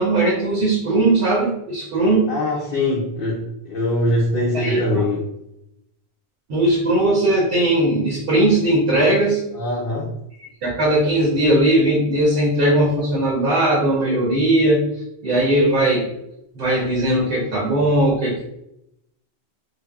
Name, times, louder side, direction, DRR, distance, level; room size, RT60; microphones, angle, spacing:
voice 1, 0.0-2.3 4.5-5.0 6.5-9.4 10.4-14.8 15.2-16.1 16.5-18.5, right 1 dB, 60° right, -4 dB, 0.8 m, -18 dB
voice 2, 2.3-5.2 9.5-10.1, left 1 dB, 60° left, -5 dB, 0.7 m, -22 dB
3.2 x 2.0 x 2.3 m, 0.82 s
omnidirectional pair, 1.1 m